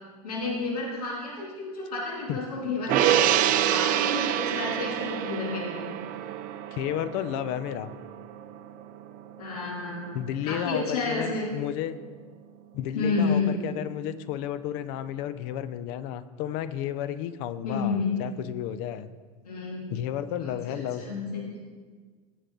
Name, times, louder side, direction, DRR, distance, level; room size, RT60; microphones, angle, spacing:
voice 1, 0.2-3.3 3.6-6.0 9.4-11.5 12.9-13.6 17.6-18.2 19.4-19.8 20.7-21.4, left 4 dB, 80° left, -4 dB, 2.8 m, -30 dB
Gong, 2.9-9.5 9.8-10.0, right 11 dB, 45° right, 0.7 m, -27 dB
voice 2, 6.7-7.9 10.1-12.0 12.7-19.1 19.9-21.0, left 11 dB, 55° left, 13 dB, 0.7 m, -32 dB
17.5 x 6.5 x 3.9 m, 1.5 s
hypercardioid pair, 90°, 19 cm